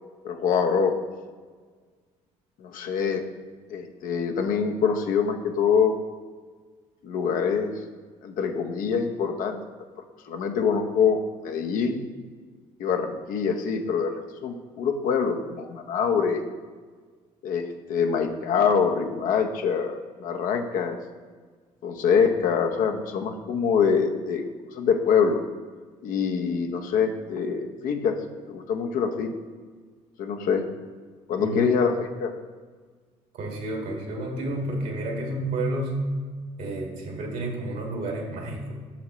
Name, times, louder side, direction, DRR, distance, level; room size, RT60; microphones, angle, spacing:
voice 1, 0.2-0.9 2.6-3.2 3.7-6.0 7.0-7.7 8.2-9.6 10.3-11.2 11.4-12.0 12.8-14.1 14.4-16.4 17.4-21.0 21.8-24.4 24.8-25.4 26.0-28.2 28.5-29.3 30.2-30.6 31.3-32.3, left 6 dB, 70° left, 4 dB, 0.9 m, -24 dB
voice 2, 31.4-31.7 33.3-36.1 36.6-38.7, right 1 dB, 70° right, 0 dB, 1.9 m, -30 dB
7.2 x 6.4 x 3.1 m, 1.5 s
supercardioid pair, 70°, 15 cm